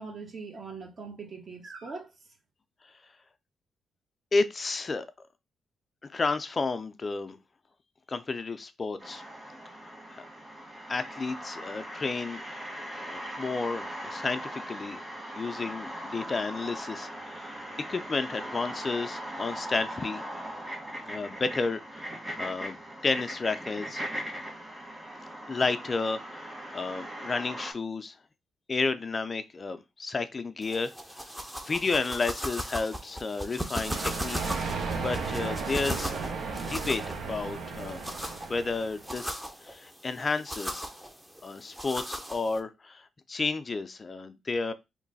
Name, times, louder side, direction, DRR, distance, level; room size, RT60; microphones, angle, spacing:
voice 1, 0.0-2.1, right 4 dB, 50° right, 1.0 m, -41 dB
voice 2, 4.3-5.1 6.1-7.4 8.1-9.2 10.1-10.2 10.9-12.4 12.9-15.0 15.3-20.2 21.0-22.8 23.0-24.0 25.5-28.2 28.7-31.2 31.7-34.4 35.0-36.2 36.5-38.0 38.5-40.9 41.4-44.7, left 3 dB, 40° left, 0.4 m, -32 dB
sound 1, 9.0-27.7, equal, 35° right, 1.7 m, -40 dB
sound 2, 30.6-42.6, equal, 5° right, 0.6 m, -38 dB
Thunder, 33.8-39.2, right 4 dB, 75° right, 0.8 m, -35 dB
3.1 x 2.2 x 3.9 m
supercardioid pair, 55°, 0 cm